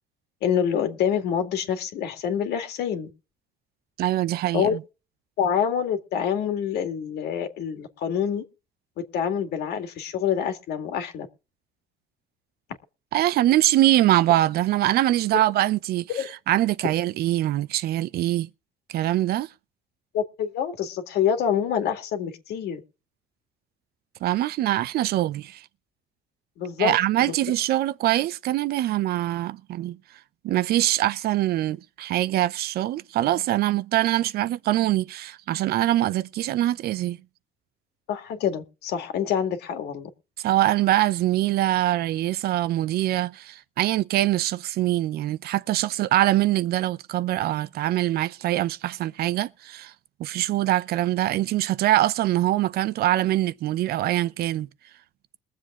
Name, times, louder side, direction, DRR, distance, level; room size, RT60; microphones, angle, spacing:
voice 1, 0.4-3.1 4.5-4.7 5.4-8.4 9.0-11.3 16.2-16.3 20.1-22.8 26.6-26.9 38.1-40.1, left 8 dB, 75° left, 2.1 m, -26 dB
voice 2, 4.0-4.8 13.1-18.5 18.9-19.5 24.2-25.6 26.8-30.0 30.4-37.2 40.4-49.9 50.2-54.7, right 14 dB, 70° right, 0.7 m, -23 dB
22.0 x 7.6 x 3.7 m
cardioid pair, 110°, 17 cm